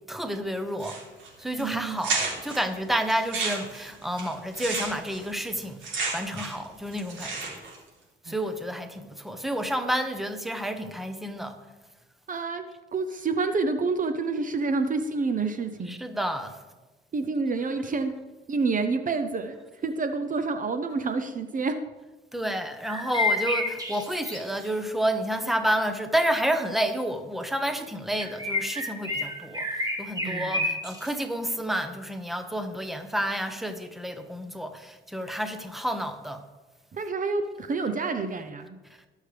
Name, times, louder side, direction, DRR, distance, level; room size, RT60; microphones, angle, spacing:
voice 1, 0.1-1.0 1.4-5.8 6.1-7.6 8.3-11.5 15.8-16.5 22.3-29.7 30.0-36.4, right 1 dB, ahead, 1.0 m, -30 dB
sound 1, 0.8-1.3 1.6-1.7 2.0-2.6 3.1-6.6 6.9-7.7, right 4 dB, 75° right, 3.6 m, -31 dB
voice 2, 1.6-2.0 8.3-8.4 12.3-12.6 12.9-16.0 17.1-18.1 18.5-19.6 19.8-21.8 30.2-30.7 36.9-38.8, right 4 dB, 40° right, 0.8 m, -28 dB
sound 2, 22.8-24.7 28.2-31.1, left 2 dB, 20° right, 2.3 m, -29 dB
19.0 x 6.5 x 3.4 m
cardioid pair, 90°, 20 cm